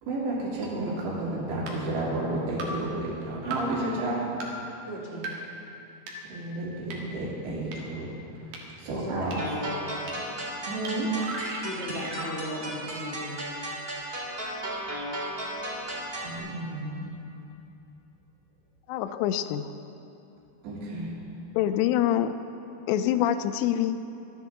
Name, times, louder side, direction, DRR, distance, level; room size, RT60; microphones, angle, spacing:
voice 1, 0.0-4.4 6.3-8.1 8.4-9.4 10.6-11.1 16.2-17.3 20.6-21.2, right 2 dB, 85° right, -5 dB, 5.3 m, -32 dB
sound 1, 0.6-0.7 1.7-1.8 2.6-2.7 3.5-3.6 4.4-4.5 5.2-5.3 6.1-6.2 6.9-7.0 7.7-7.8 8.5-8.6 9.3-9.4 10.1-10.2 10.8-10.9 11.2-12.4, right 3 dB, 55° right, 2.7 m, -36 dB
voice 2, 4.9-5.4 8.9-9.9 11.6-13.5, equal, 25° left, -6 dB, 1.8 m, -36 dB
sound 2, 9.4-16.4, right 1 dB, 20° right, 2.0 m, -35 dB
voice 3, 18.9-19.7 21.6-22.3 22.9-24.0, left 11 dB, 85° left, 11 dB, 2.8 m, -25 dB
25.5 x 11.0 x 3.7 m, 2.8 s
omnidirectional pair, 5.0 m